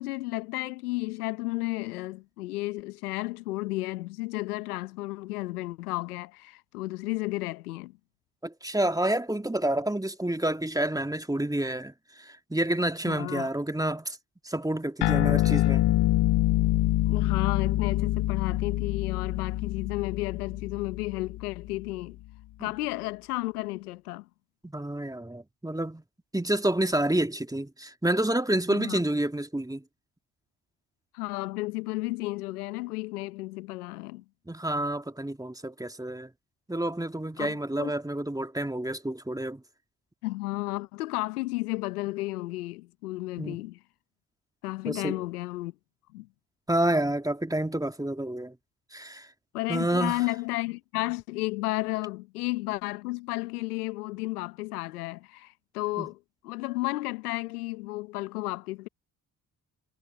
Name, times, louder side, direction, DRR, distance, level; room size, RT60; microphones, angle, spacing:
voice 1, 0.0-8.0 13.0-13.5 17.1-22.2 22.6-24.3 28.7-29.0 31.1-34.2 37.4-37.9 40.2-43.8 44.6-45.7 46.1-46.3 49.5-56.2 56.4-58.9, left 20 dB, 90° left, 1.1 m, -33 dB
voice 2, 8.4-14.2 14.4-15.8 22.6-22.7 24.6-26.0 26.3-29.8 34.5-36.3 36.7-39.6 43.4-43.6 44.9-45.2 46.7-48.6 48.9-49.3 49.7-50.2 56.0-56.1, right 1 dB, 10° right, 2.0 m, -29 dB
sound 1, 15.0-21.8, left 16 dB, 65° left, 0.9 m, -26 dB
hypercardioid pair, 40°, 44 cm